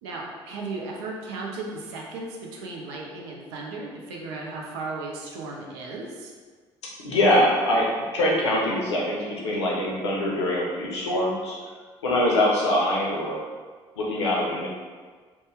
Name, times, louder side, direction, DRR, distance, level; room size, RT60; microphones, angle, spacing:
voice 1, 0.0-6.3, right 3 dB, 65° right, -1 dB, 0.5 m, -35 dB
voice 2, 7.0-11.6 12.0-13.4 14.0-14.7, left 1 dB, 75° left, -4 dB, 0.6 m, -23 dB
2.7 x 2.1 x 3.3 m, 1.5 s
figure-of-eight pair, 50°, 14 cm